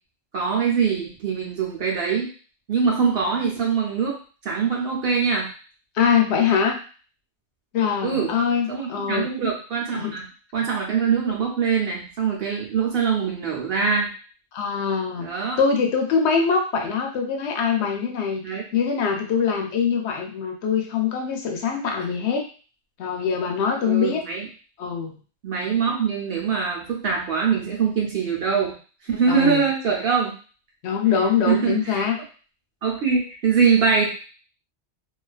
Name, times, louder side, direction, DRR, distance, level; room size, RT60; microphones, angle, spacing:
voice 1, 0.3-2.3 2.7-5.5 8.0-8.3 8.7-10.2 10.5-14.1 15.2-15.6 18.4-18.6 22.0-22.1 23.8-24.5 25.4-28.7 29.0-30.4 31.5-32.0 32.8-34.1, right 6 dB, 65° right, -2 dB, 0.8 m, -23 dB
voice 2, 5.9-6.8 7.7-9.3 9.9-10.1 14.5-15.3 15.6-22.5 23.0-24.3 24.8-25.2 29.3-29.6 30.8-32.2, left 6 dB, 80° left, 2 dB, 0.9 m, -23 dB
2.4 x 2.3 x 2.3 m, 0.38 s
omnidirectional pair, 1.1 m